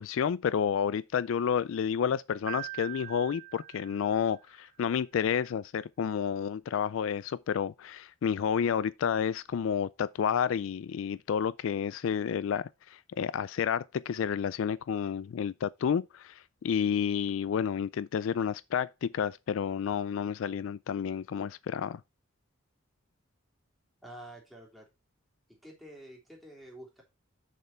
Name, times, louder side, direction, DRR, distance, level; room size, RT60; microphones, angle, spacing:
voice 1, 0.0-22.0, left 7 dB, 70° left, 0.3 m, -30 dB
Piano, 2.5-4.6, right 17 dB, 70° right, 1.2 m, -43 dB
voice 2, 24.0-24.9 25.6-27.0, right 1 dB, ahead, 3.2 m, -48 dB
6.7 x 6.7 x 4.3 m
head